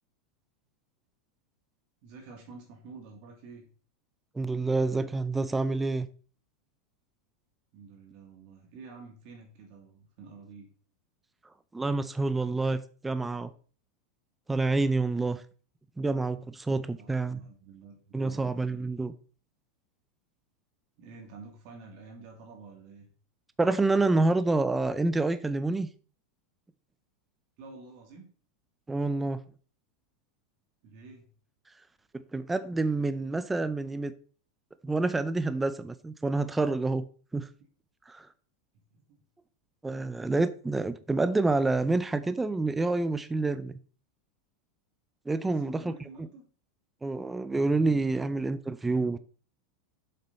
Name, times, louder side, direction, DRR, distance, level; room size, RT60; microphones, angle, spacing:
voice 1, 2.0-3.7 7.7-10.7 16.9-17.9 18.2-18.5 21.0-23.1 27.6-28.3 30.8-31.3 38.9-39.2 45.5-46.4, right 4 dB, 45° right, 2.6 m, -49 dB
voice 2, 4.4-6.1 11.7-13.5 14.5-15.4 16.0-17.4 18.1-19.1 23.6-25.9 28.9-29.4 32.3-34.1 34.8-37.1 37.3-37.5 38.1-38.3 39.8-43.7 45.3-46.3 47.0-49.2, right 3 dB, 5° right, 0.4 m, -28 dB
11.0 x 7.6 x 4.1 m
supercardioid pair, 165°, 2 cm